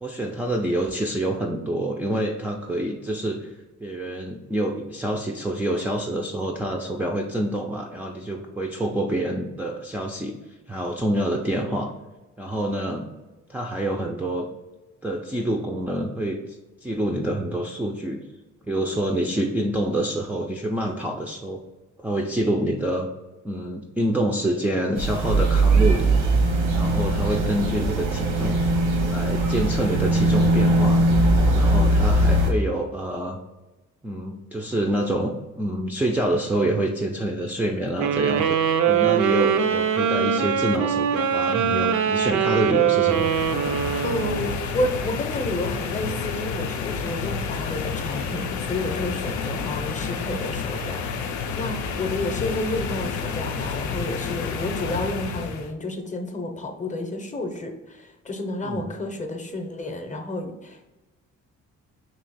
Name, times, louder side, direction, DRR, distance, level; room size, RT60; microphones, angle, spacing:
voice 1, 0.0-10.3 10.7-11.9 12.4-13.1 13.5-14.5 15.0-18.2 18.7-21.6 22.0-23.1 23.4-26.1 26.7-28.6 29.1-31.0 31.5-33.4 34.0-38.6 38.9-43.3 58.6-58.9, right 1 dB, 5° right, -2 dB, 0.4 m, -27 dB
sound 1, 24.9-32.5, right 1 dB, 90° right, 0.9 m, -20 dB
sound 2, 38.0-44.5, right 8 dB, 70° right, 0.5 m, -22 dB
sound 3, 43.1-55.7, left 5 dB, 75° left, 0.5 m, -30 dB
voice 2, 44.0-60.8, left 1 dB, 25° left, 3 dB, 0.7 m, -30 dB
3.0 x 2.8 x 4.1 m, 1.1 s
cardioid pair, 90°, 30 cm